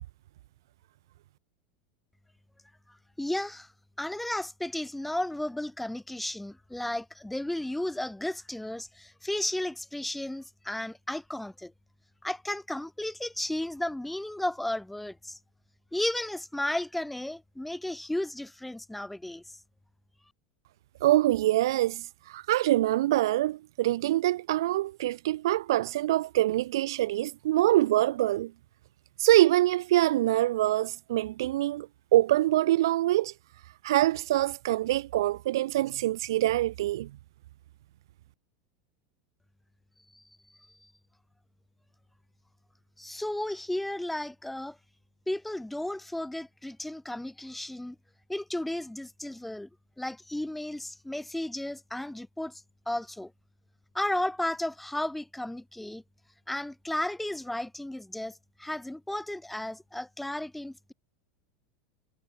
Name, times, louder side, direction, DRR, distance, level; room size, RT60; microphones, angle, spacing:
voice 1, 3.2-3.7 4.0-11.7 12.2-15.4 15.9-19.4 40.1-40.2 43.0-44.8 45.3-48.0 48.3-49.7 50.0-53.3 53.9-56.0 56.5-60.9, left 1 dB, 5° left, 4.5 m, -34 dB
voice 2, 21.0-28.5 29.2-33.3 33.8-37.1, right 15 dB, 75° right, 1.2 m, -25 dB
hypercardioid pair, 95°, 2 cm